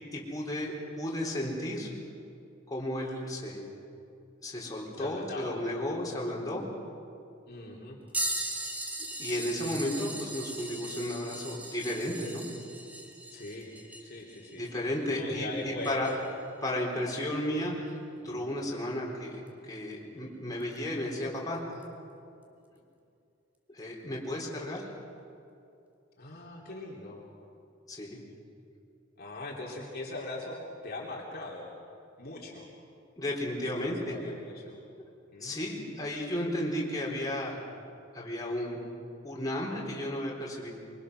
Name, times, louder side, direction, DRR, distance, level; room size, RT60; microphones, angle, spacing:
voice 1, 0.1-1.9 2.7-3.6 4.4-6.6 9.2-12.4 14.6-16.1 16.6-18.0 18.2-21.8 23.7-24.9 27.9-28.2 33.2-34.1 35.4-37.6 38.1-38.8 39.2-40.7, left 1 dB, 20° left, -3 dB, 4.2 m, -33 dB
voice 2, 5.0-5.6 7.5-8.0 13.3-13.7 14.0-14.6 15.1-16.1 18.3-18.5 26.2-27.3 29.2-30.6 30.8-31.7 32.2-32.7 33.6-34.8 35.3-35.9, left 2 dB, 50° left, -3 dB, 3.1 m, -41 dB
sound 1, 8.1-16.3 17.1-17.2 19.5-19.6 20.6-20.8 21.8-21.9, right 1 dB, 10° right, 2.5 m, -39 dB
24.5 x 24.0 x 6.4 m, 2.6 s
head